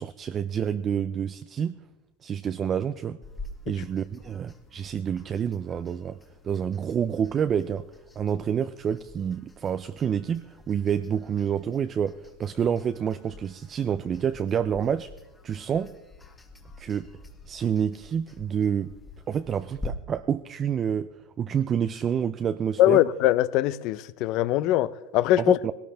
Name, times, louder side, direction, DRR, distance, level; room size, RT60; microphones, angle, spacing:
voice 1, 0.0-1.7 2.2-3.2 3.7-6.2 6.4-7.8 8.2-15.1 15.4-15.9 16.8-17.1 17.5-18.9 19.3-21.1 21.4-23.0 25.4-25.7, right 8 dB, 25° right, 0.4 m, -28 dB
sound 1, 3.2-19.9, left 3 dB, 10° left, 1.5 m, -47 dB
voice 2, 22.8-25.6, left 14 dB, 45° left, 0.6 m, -22 dB
19.5 x 17.5 x 3.4 m
supercardioid pair, 150°, 0 cm